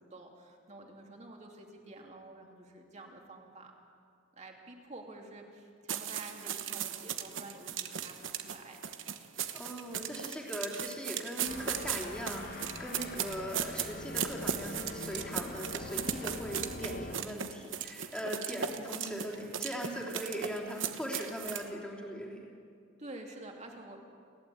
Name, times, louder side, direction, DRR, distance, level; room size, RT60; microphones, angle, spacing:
voice 1, 0.0-3.7 4.3-8.8 18.7-19.0 23.0-24.0, right 2 dB, 35° right, 1 dB, 2.9 m, -49 dB
sound 1, 5.9-21.7, right 8 dB, 75° right, 1.2 m, -37 dB
voice 2, 9.5-22.5, equal, 5° left, -2 dB, 3.1 m, -40 dB
sound 2, 11.5-17.2, left 2 dB, 50° left, 1.3 m, -43 dB
29.5 x 12.0 x 8.6 m, 2.3 s
head